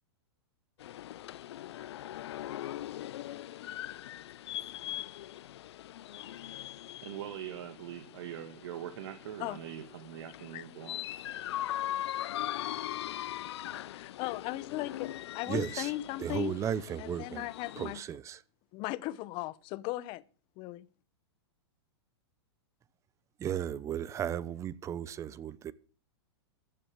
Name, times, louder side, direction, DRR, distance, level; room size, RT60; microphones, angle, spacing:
sound 1, 0.8-18.0, left 13 dB, 70° left, 0.6 m, -41 dB
voice 1, 7.0-11.0, right 11 dB, 65° right, 1.6 m, -42 dB
voice 2, 13.9-16.6 17.0-18.0 18.7-20.2 20.6-20.9, left 17 dB, 35° left, 0.8 m, -37 dB
voice 3, 15.5-15.9 16.2-17.5 17.8-18.4 23.4-25.7, right 9 dB, 20° right, 0.7 m, -35 dB
14.5 x 7.7 x 8.0 m
hypercardioid pair, 135°, 14 cm